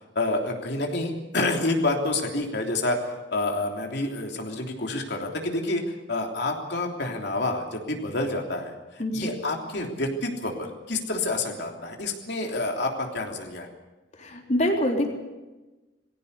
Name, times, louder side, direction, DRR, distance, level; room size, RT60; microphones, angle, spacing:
voice 1, 0.1-13.7, left 2 dB, 65° left, 2 dB, 3.3 m, -28 dB
voice 2, 14.2-15.1, equal, 40° left, 1 dB, 3.7 m, -25 dB
20.5 x 16.5 x 8.4 m, 1.1 s
head